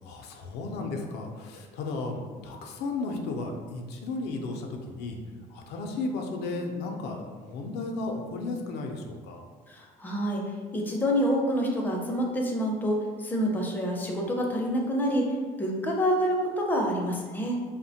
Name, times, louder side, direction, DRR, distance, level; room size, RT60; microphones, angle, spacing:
voice 1, 0.0-5.2 5.5-9.4, left 3 dB, 80° left, 2 dB, 0.4 m, -34 dB
voice 2, 9.7-17.6, equal, 10° left, -1 dB, 0.4 m, -27 dB
2.8 x 2.1 x 2.7 m, 1.5 s
cardioid pair, 110°, 17 cm